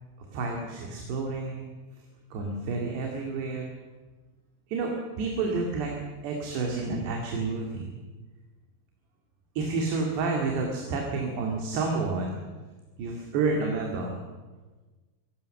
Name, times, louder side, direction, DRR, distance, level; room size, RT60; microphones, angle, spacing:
voice 1, 0.2-1.7 2.3-3.7 4.7-5.9 6.2-7.9 9.6-12.4 13.0-14.2, right 3 dB, 70° right, 1 dB, 4.4 m, -30 dB
24.5 x 18.5 x 6.7 m, 1.3 s
omnidirectional pair, 5.1 m